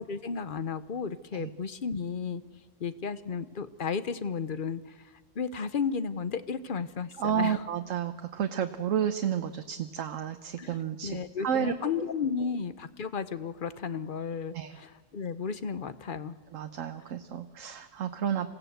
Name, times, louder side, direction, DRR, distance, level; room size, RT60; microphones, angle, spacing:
voice 1, 0.0-2.4 2.8-4.8 5.4-7.6 10.6-10.7 11.0-16.4, left 6 dB, 45° left, 13 dB, 0.9 m, -33 dB
voice 2, 7.2-11.7 14.5-14.8 16.5-18.5, right 8 dB, 80° right, 7 dB, 1.2 m, -31 dB
27.0 x 16.5 x 8.0 m, 1.4 s
omnidirectional pair, 1.3 m